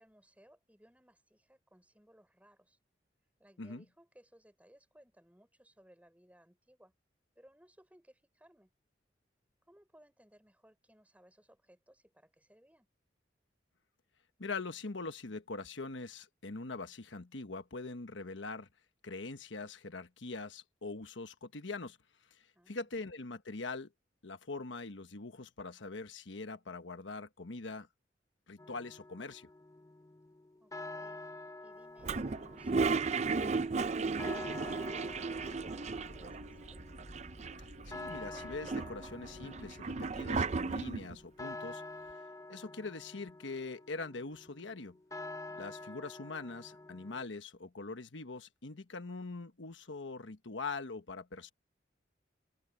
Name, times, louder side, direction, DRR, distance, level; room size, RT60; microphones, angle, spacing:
voice 1, 0.0-2.8 3.4-6.9 7.4-8.7 9.6-12.9 22.5-22.9 30.6-31.2 31.6-36.8 45.5-45.9, equal, 10° right, 3.9 m, -64 dB
voice 2, 14.4-18.7 19.0-22.0 22.3-23.9 24.2-27.9 28.5-29.5 37.6-41.8 42.5-45.0 45.6-51.5, left 3 dB, 85° left, 1.2 m, -43 dB
sound 1, 28.6-47.2, left 2 dB, 20° left, 0.7 m, -48 dB
Toilet flush, 32.0-36.4 36.7-36.8 37.0-37.8 38.3-41.2, right 4 dB, 35° right, 0.5 m, -34 dB
sound 2, 34.6-40.8, right 1 dB, 55° right, 1.5 m, -51 dB
open air
head